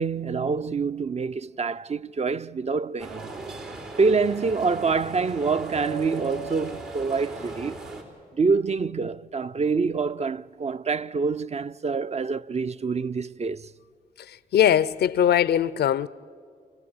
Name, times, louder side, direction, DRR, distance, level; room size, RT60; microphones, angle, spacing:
voice 1, 0.0-3.3 4.0-7.9 8.3-13.7, right 4 dB, 40° right, 0.5 m, -26 dB
sound 1, 3.0-8.0, right 3 dB, 80° right, 3.6 m, -37 dB
voice 2, 14.2-16.1, left 10 dB, 90° left, 0.5 m, -21 dB
24.5 x 16.5 x 8.7 m
cardioid pair, 40°, 16 cm